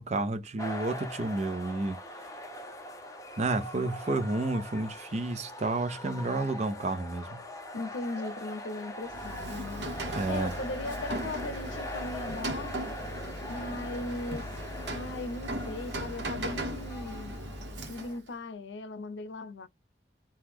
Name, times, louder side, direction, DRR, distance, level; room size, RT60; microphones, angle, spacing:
voice 1, 0.0-2.0 3.4-7.4 10.1-10.5, right 2 dB, 40° right, 0.5 m, -31 dB
sound 1, 0.6-18.2, left 1 dB, 20° left, 0.7 m, -42 dB
voice 2, 7.7-9.9 10.3-13.0 13.5-14.5 14.9-17.3 17.8-19.7, left 2 dB, 85° left, 0.6 m, -38 dB
Rain, 9.0-18.3, right 1 dB, 80° right, 0.9 m, -38 dB
2.9 x 2.3 x 3.5 m
head